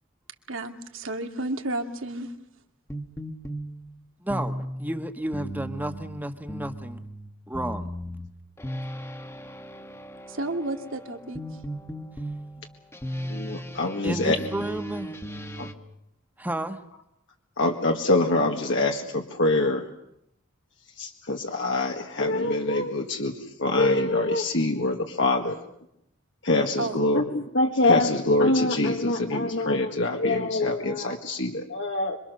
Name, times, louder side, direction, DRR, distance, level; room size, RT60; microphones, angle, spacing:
voice 1, 0.5-2.3 10.3-11.4 26.8-27.0, right 2 dB, 85° right, 4 dB, 2.4 m, -31 dB
sound 1, 2.9-15.7, equal, 15° left, 1.4 m, -36 dB
voice 2, 4.2-7.0 7.5-7.9 14.0-15.1 16.4-16.8, right 1 dB, 10° right, 7 dB, 1.5 m, -32 dB
voice 3, 13.3-14.3 15.6-15.7 17.6-19.9 21.0-25.6 26.4-32.2, left 2 dB, 70° left, 2 dB, 1.8 m, -24 dB
26.5 x 24.0 x 6.7 m, 0.79 s
head